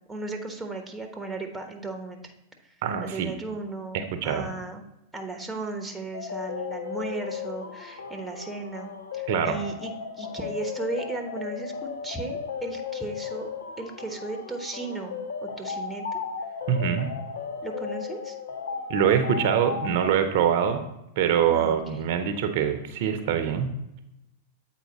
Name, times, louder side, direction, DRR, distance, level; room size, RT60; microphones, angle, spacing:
voice 1, 0.1-2.2 3.0-4.8 5.1-13.5 13.8-16.2 17.6-18.4 21.5-22.0, right 3 dB, 5° right, 4 dB, 1.0 m, -36 dB
voice 2, 2.8-3.3 3.9-4.5 9.3-9.6 16.7-17.1 18.9-20.8 21.2-23.7, right 8 dB, 60° right, 8 dB, 0.7 m, -24 dB
sound 1, 6.1-20.1, left 6 dB, 80° left, 0.7 m, -35 dB
8.1 x 4.3 x 4.1 m, 0.88 s
hypercardioid pair, 105°, 0 cm